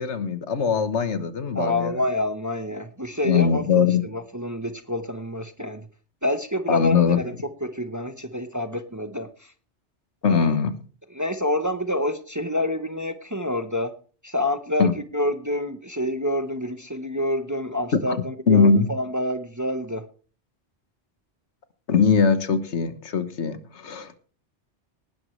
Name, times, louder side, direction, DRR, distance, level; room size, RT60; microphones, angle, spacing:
voice 1, 0.0-2.0 3.2-4.0 6.7-7.2 10.2-10.7 14.8-14.9 18.1-18.2 18.5-18.9 21.9-24.2, left 6 dB, 75° left, 11 dB, 1.5 m, -21 dB
voice 2, 1.5-5.9 6.2-7.3 7.6-9.5 10.3-10.5 11.1-13.9 14.2-20.1, left 1 dB, 20° right, 9 dB, 0.8 m, -27 dB
18.5 x 11.0 x 3.2 m, 0.39 s
omnidirectional pair, 1.2 m